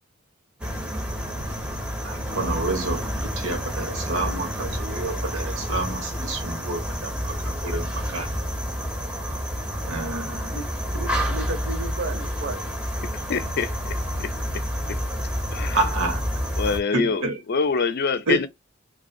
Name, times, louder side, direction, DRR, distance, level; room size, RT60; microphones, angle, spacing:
sound 1, 0.6-16.8, equal, 5° right, 0.5 m, -29 dB
voice 1, 2.0-7.1 7.6-8.3 9.9-10.4 15.7-16.2 16.9-17.4 18.3-18.4, right 2 dB, 90° right, 0.9 m, -28 dB
voice 2, 10.5-12.7, right 3 dB, 50° right, 0.5 m, -34 dB
voice 3, 13.3-14.6 14.9-15.0 15.5-15.8 16.6-18.5, left 4 dB, 50° left, 0.4 m, -26 dB
2.4 x 2.2 x 2.5 m
head